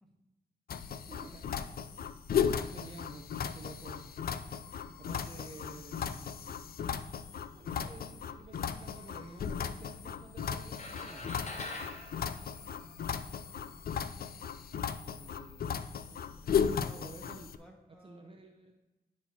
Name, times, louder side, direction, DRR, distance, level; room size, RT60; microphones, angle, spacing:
sound 1, 0.7-17.6, left 7 dB, 60° left, 0.4 m, -36 dB
voice 1, 1.1-1.5 2.5-4.1 5.0-6.7 7.5-11.9 16.1-16.2 16.9-17.5 18.0-18.7, right 3 dB, 30° right, 2 dB, 0.6 m, -51 dB
sound 2, 10.7-13.3, left 2 dB, 40° left, 1.0 m, -44 dB
voice 2, 15.1-16.0 16.3-18.4, equal, 5° left, 0 dB, 1.6 m, -57 dB
11.0 x 4.3 x 2.9 m, 1.1 s
cardioid pair, 65°, 18 cm